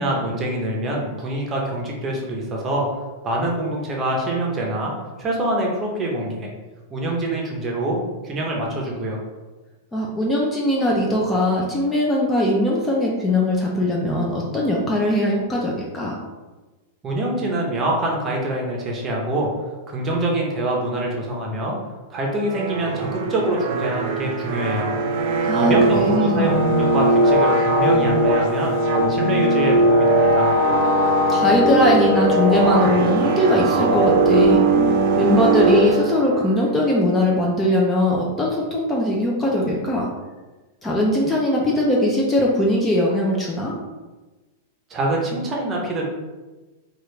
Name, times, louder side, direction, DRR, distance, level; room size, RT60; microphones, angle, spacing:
voice 1, 0.0-2.8 3.2-4.9 5.2-6.5 6.9-9.2 17.0-19.5 19.9-21.8 22.1-25.0 25.5-28.8 29.1-30.5 44.9-46.1, right 1 dB, 25° right, -1 dB, 0.7 m, -25 dB
voice 2, 9.9-16.2 25.4-26.6 31.3-34.6 35.2-40.1 40.8-43.7, left 1 dB, 10° left, -3 dB, 0.5 m, -20 dB
sound 1, 22.4-36.6, right 2 dB, 50° right, 0.5 m, -19 dB
3.0 x 2.4 x 3.2 m, 1.2 s
hypercardioid pair, 135°, 0 cm